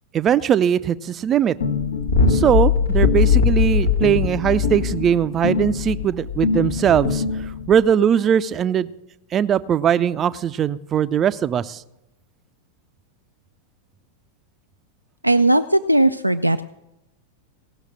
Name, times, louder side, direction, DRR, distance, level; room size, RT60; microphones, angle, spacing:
voice 1, 0.1-1.6 2.3-8.9 9.3-11.8, right 9 dB, 25° right, 16 dB, 0.5 m, -20 dB
sound 1, 1.6-7.8, left 5 dB, 70° left, 1.1 m, -20 dB
voice 2, 15.2-16.6, right 1 dB, 85° right, 10 dB, 0.3 m, -17 dB
18.0 x 6.5 x 6.4 m, 0.91 s
figure-of-eight pair, 90°, 0 cm